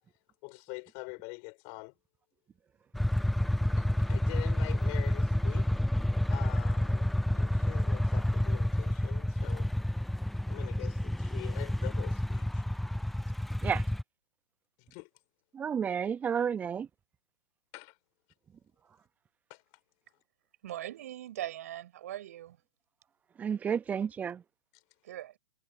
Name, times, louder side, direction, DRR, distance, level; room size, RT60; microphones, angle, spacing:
voice 1, 0.4-1.9 3.8-5.7 6.3-7.1 7.3-9.7 10.5-12.6 14.8-15.1 17.7-18.0 19.5-19.6, left 39 dB, 35° left, 4.4 m, -45 dB
sound 1, 2.9-14.0, left 1 dB, ahead, 0.6 m, -29 dB
voice 2, 15.5-16.9 23.4-24.4, right 7 dB, 15° right, 1.3 m, -31 dB
voice 3, 20.6-22.6 25.0-25.4, right 12 dB, 55° right, 7.1 m, -40 dB
figure-of-eight pair, 115°, 10 cm